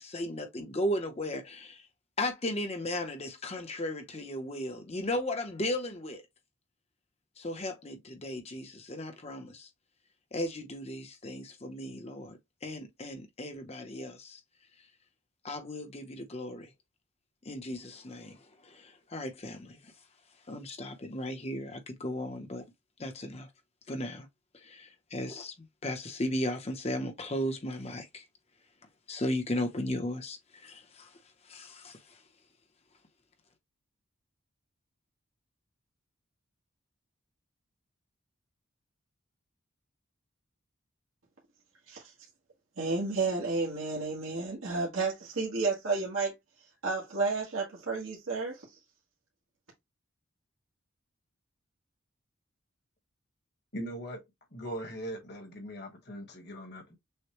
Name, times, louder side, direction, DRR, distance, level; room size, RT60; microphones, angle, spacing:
voice 1, 0.0-1.8 2.2-6.2 7.4-9.7 10.3-14.4 15.4-16.7 17.5-18.4 18.6-19.8 20.5-22.6 23.0-23.5 23.9-24.3 24.6-25.5 25.8-28.2 29.1-31.1 31.5-32.0, left 1 dB, 30° left, 0.8 m, -36 dB
voice 2, 42.8-46.3 46.8-48.6, right 3 dB, 85° right, 1.4 m, -31 dB
voice 3, 53.7-54.2 54.5-57.0, equal, 50° left, 1.4 m, -40 dB
6.4 x 2.2 x 3.0 m
head